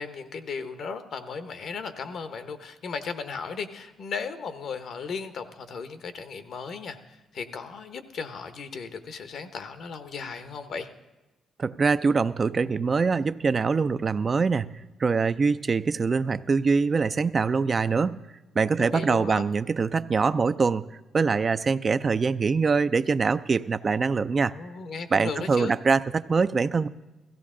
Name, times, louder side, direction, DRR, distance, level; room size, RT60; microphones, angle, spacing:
voice 1, 0.0-10.9 18.8-19.4 24.4-25.8, left 5 dB, 60° left, 10 dB, 0.9 m, -36 dB
voice 2, 11.6-18.2 18.6-20.9 21.1-24.5 25.1-26.9, right 4 dB, 35° right, 13 dB, 0.4 m, -24 dB
16.5 x 15.0 x 3.8 m, 1.1 s
cardioid pair, 90°, 0 cm